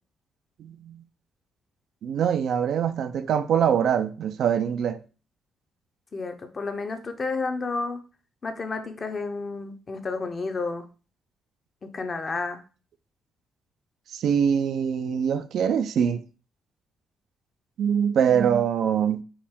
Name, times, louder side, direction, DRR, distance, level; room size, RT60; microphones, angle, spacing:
voice 1, 0.6-1.0 2.0-5.0 14.1-16.2 17.8-19.2, right 8 dB, 70° right, 0.4 m, -23 dB
voice 2, 6.1-8.0 8.4-10.8 11.8-12.6, left 3 dB, 35° left, 0.7 m, -31 dB
4.7 x 2.6 x 3.6 m
cardioid pair, 90°, 0 cm